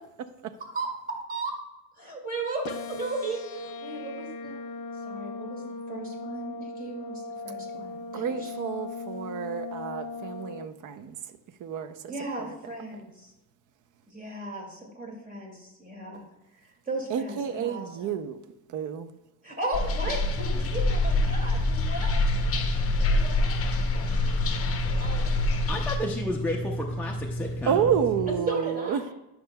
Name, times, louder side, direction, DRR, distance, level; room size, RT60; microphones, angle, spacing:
voice 1, 0.2-0.6 7.8-7.9 8.1-11.2 11.6-12.1 12.4-12.5 17.1-18.4 18.7-19.2 27.7-29.0, right 8 dB, 55° right, 0.6 m, -30 dB
voice 2, 0.7-1.5 2.0-4.6 5.0-5.6 5.9-8.5 12.1-13.3 14.1-16.2 16.6-18.2 19.4-22.2 22.6-23.6 23.9-24.7 25.0-25.7 28.5-29.1, right 2 dB, 20° right, 2.1 m, -36 dB
sound 1, 2.6-10.7, left 3 dB, 75° left, 0.7 m, -38 dB
sound 2, 19.7-26.0, left 2 dB, 40° left, 0.7 m, -26 dB
sound 3, 20.3-28.4, equal, 20° left, 1.3 m, -34 dB
voice 3, 25.7-27.8, left 1 dB, 5° left, 0.5 m, -32 dB
10.0 x 5.8 x 2.2 m
cardioid pair, 135°, 37 cm